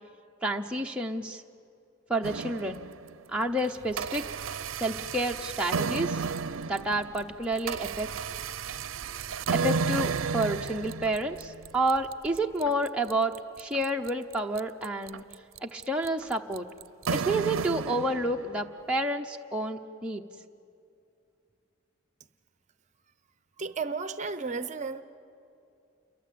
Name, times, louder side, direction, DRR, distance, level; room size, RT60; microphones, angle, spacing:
voice 1, 0.4-1.4 2.1-2.9 3.3-4.2 4.8-6.2 6.7-8.1 9.5-15.2 15.6-16.7 17.1-20.2, right 1 dB, 5° right, 1 dB, 0.7 m, -29 dB
sound 1, 2.2-3.2 3.6-18.7, right 5 dB, 80° right, 0.5 m, -33 dB
sound 2, 6.2-12.4, right 1 dB, 85° left, 4.1 m, -54 dB
voice 2, 23.6-25.0, right 4 dB, 35° right, 12 dB, 0.7 m, -33 dB
29.0 x 22.5 x 8.5 m, 2.5 s
head